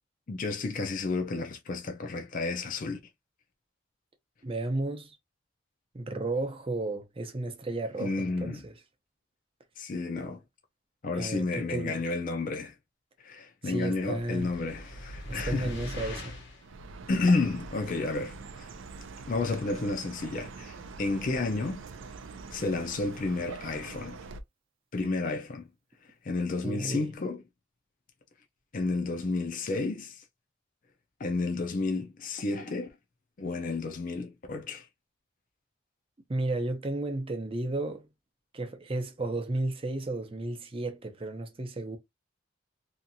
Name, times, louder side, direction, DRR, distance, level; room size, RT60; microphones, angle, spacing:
voice 1, 0.3-3.0 8.0-8.6 9.8-10.4 11.0-12.8 13.2-15.7 16.0-16.2 17.1-18.7 19.3-21.9 22.5-24.2 24.9-25.7 26.2-27.4 28.7-30.2 31.2-32.9 33.4-34.9, left 3 dB, 45° left, 0.5 m, -31 dB
voice 2, 4.4-5.1 5.9-8.8 11.2-12.0 13.6-14.5 15.3-16.3 26.6-27.1 36.3-38.1 38.5-42.0, right 2 dB, 30° right, 0.6 m, -33 dB
sound 1, 14.0-16.7, left 1 dB, 60° left, 0.8 m, -40 dB
Chirp tweet, 16.6-24.4, right 4 dB, 85° right, 0.5 m, -44 dB
2.8 x 2.4 x 2.6 m
head